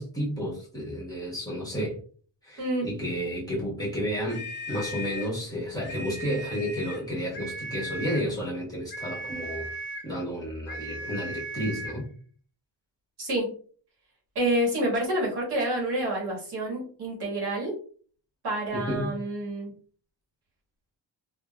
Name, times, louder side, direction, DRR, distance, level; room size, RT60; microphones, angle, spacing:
voice 1, 0.0-2.0 2.4-9.7 10.0-12.1 18.7-19.1, equal, 10° left, -7 dB, 1.2 m, -31 dB
voice 2, 2.6-2.9 13.2-13.5 14.3-17.7 18.4-19.7, right 1 dB, 60° right, -2 dB, 1.2 m, -28 dB
sound 1, 4.3-5.4 5.8-7.1 7.3-8.3 8.9-10.1 10.7-12.0, right 1 dB, 25° left, 0.5 m, -37 dB
3.2 x 2.3 x 2.2 m, 0.43 s
wide cardioid pair, 170°, 45 cm